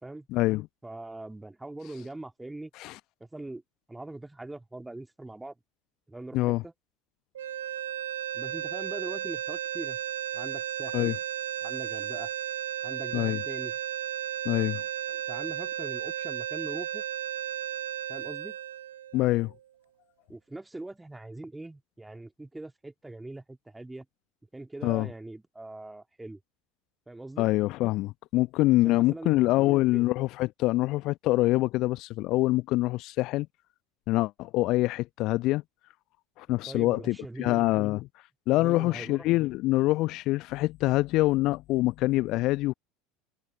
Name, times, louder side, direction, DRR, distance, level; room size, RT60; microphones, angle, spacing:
voice 1, 0.3-0.7 2.8-3.0 6.3-6.6 10.9-11.1 13.1-13.4 14.4-14.8 19.1-19.5 24.8-25.1 27.4-33.5 34.1-35.6 36.4-38.0 38.5-42.7, left 18 dB, 50° left, 1.0 m, -25 dB
voice 2, 0.8-2.7 3.2-3.6 3.9-5.6 6.1-6.7 8.3-10.0 10.3-11.1 11.6-12.3 12.8-13.8 15.1-17.0 18.1-18.6 20.3-24.1 24.5-26.4 27.1-27.5 28.7-30.1 36.7-37.9 38.5-39.2, right 2 dB, 10° right, 2.5 m, -42 dB
sound 1, 7.3-19.6, right 11 dB, 70° right, 1.8 m, -34 dB
figure-of-eight pair, 75°, 0 cm